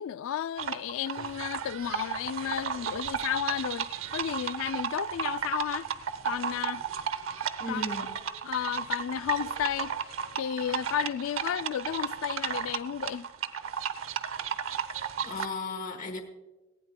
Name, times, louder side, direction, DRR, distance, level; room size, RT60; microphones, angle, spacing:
voice 1, 0.0-5.9 6.2-6.8 7.7-7.8 8.4-13.3, left 9 dB, 80° left, 0.3 m, -33 dB
sound 1, 0.6-15.5, right 7 dB, 85° right, 0.8 m, -34 dB
voice 2, 7.6-8.2 15.2-16.2, left 2 dB, 40° left, 1.1 m, -35 dB
18.0 x 15.5 x 2.2 m
head